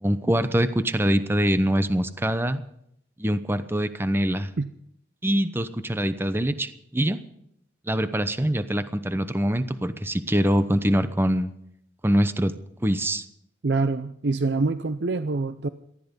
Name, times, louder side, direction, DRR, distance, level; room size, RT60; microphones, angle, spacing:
voice 1, 0.0-2.6 3.2-4.5 5.2-7.2 7.9-11.5 12.0-12.5 12.8-13.2, equal, 15° right, 11 dB, 0.8 m, -24 dB
voice 2, 13.6-15.7, right 3 dB, 70° right, 11 dB, 0.6 m, -25 dB
18.5 x 14.0 x 5.3 m, 0.74 s
head